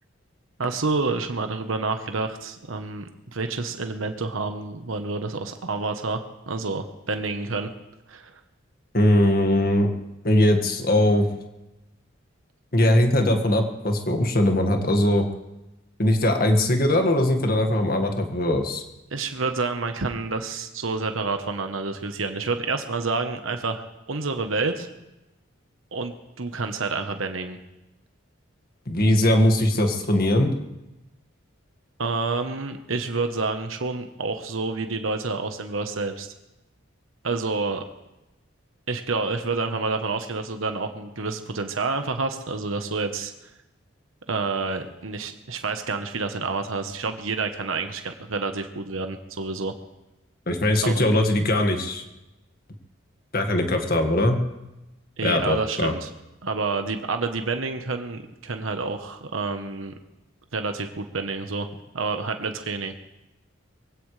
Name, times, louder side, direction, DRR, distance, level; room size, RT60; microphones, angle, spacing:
voice 1, 0.6-7.7 8.1-8.4 19.1-24.9 25.9-27.6 32.0-36.3 37.2-37.8 38.9-43.3 44.3-49.7 50.8-51.0 55.2-56.1 56.4-59.9 60.5-61.7 61.9-62.9, right 3 dB, 85° right, 7 dB, 1.1 m, -28 dB
voice 2, 8.9-9.9 10.2-11.3 12.7-15.2 16.0-18.8 28.9-30.5 50.5-52.0 53.3-54.4 55.2-55.9, left 1 dB, 50° left, 5 dB, 1.8 m, -20 dB
23.0 x 16.5 x 3.3 m, 0.98 s
head